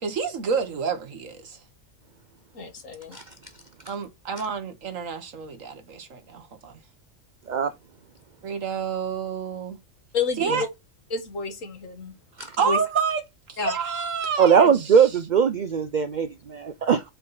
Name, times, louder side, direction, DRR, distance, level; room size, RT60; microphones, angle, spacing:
voice 1, 0.0-1.6 3.9-6.8 8.4-9.8 10.4-10.6 12.6-13.2 13.5-14.7, right 6 dB, 80° right, 1.6 m, -28 dB
voice 2, 2.5-3.2 10.1-10.7 11.1-12.2 12.6-12.8 13.6-13.8, left 4 dB, 80° left, 1.9 m, -29 dB
voice 3, 14.4-17.0, right 7 dB, 65° right, 0.4 m, -20 dB
5.5 x 4.0 x 5.6 m
omnidirectional pair, 1.3 m